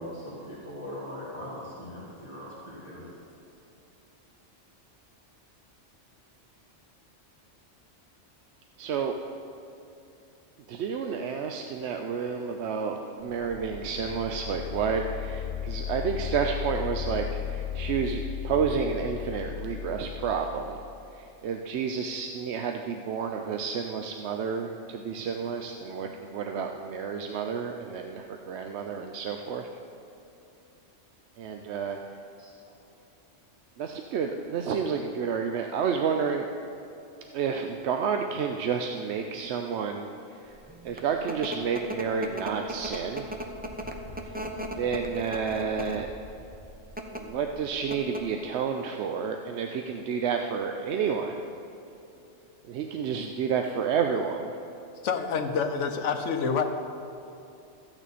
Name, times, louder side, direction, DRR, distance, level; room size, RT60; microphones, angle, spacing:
voice 1, 0.0-3.1, left 1 dB, 25° left, -9 dB, 1.9 m, -40 dB
voice 2, 8.8-9.1 10.7-20.8 21.1-29.7 31.4-32.0 33.8-36.5 37.3-40.1 40.4-40.5 40.8-43.3 44.8-46.1 47.1-51.4 52.7-54.5, right 6 dB, 70° right, 4 dB, 0.8 m, -30 dB
sound 1, 13.3-21.0, left 10 dB, 50° left, 1.6 m, -36 dB
sound 2, 40.7-46.1 46.8-47.2 47.6-47.7 47.9-48.4, right 1 dB, 10° right, 0.5 m, -37 dB
Wind, 42.7-48.0, left 1 dB, 10° left, 1.8 m, -48 dB
voice 3, 55.0-56.6, left 6 dB, 75° left, 6 dB, 1.1 m, -27 dB
14.0 x 9.0 x 4.2 m, 2.8 s
omnidirectional pair, 1.3 m